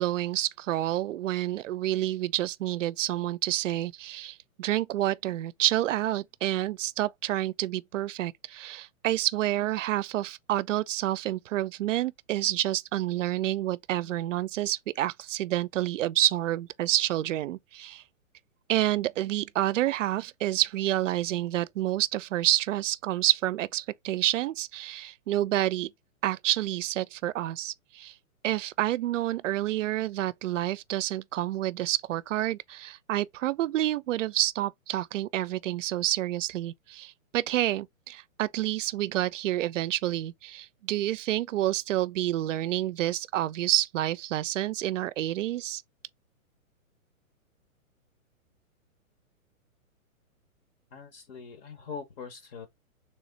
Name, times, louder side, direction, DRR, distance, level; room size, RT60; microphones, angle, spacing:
voice 1, 0.0-18.0 18.7-25.9 26.2-28.1 28.4-45.8, right 14 dB, 60° right, 0.5 m, -28 dB
voice 2, 50.9-52.7, left 6 dB, 45° left, 1.0 m, -42 dB
3.4 x 3.1 x 3.9 m
hypercardioid pair, 150°, 42 cm